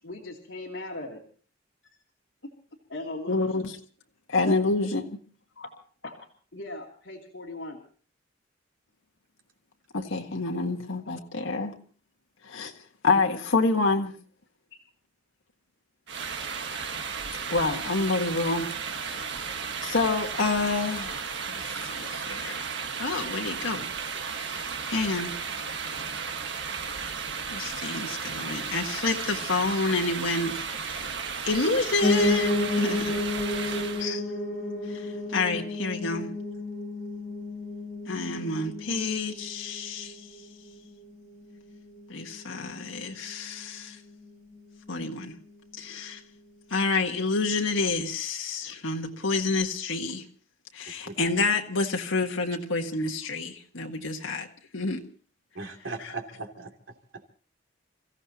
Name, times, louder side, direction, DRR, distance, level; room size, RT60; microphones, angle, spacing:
voice 1, 0.0-1.2 2.4-2.5 2.9-3.7 5.6-6.1 6.5-7.8 19.2-19.3, left 2 dB, 70° left, 2.9 m, -39 dB
voice 2, 3.3-3.7 4.3-5.2 9.9-11.8 12.4-12.7 13.0-14.1 17.5-18.7 19.8-21.2 21.5-22.7 23.0-23.9 24.3-25.3 27.5-31.1 31.4-33.2 34.0-34.2 34.9-36.3 38.1-40.1 42.1-44.0 44.9-45.4 45.8-46.2 46.7-50.3 50.7-54.5 54.7-55.0 56.0-56.1, left 3 dB, 90° left, 1.6 m, -28 dB
sound 1, 16.1-34.1, right 5 dB, 65° right, 1.6 m, -34 dB
Piano, 32.0-41.1 41.5-42.7 43.0-43.1 43.3-43.4 43.6-43.7 44.3-44.4, left 2 dB, 10° left, 6.7 m, -31 dB
voice 3, 55.5-56.7, right 3 dB, 90° right, 2.9 m, -39 dB
30.0 x 15.5 x 2.9 m
head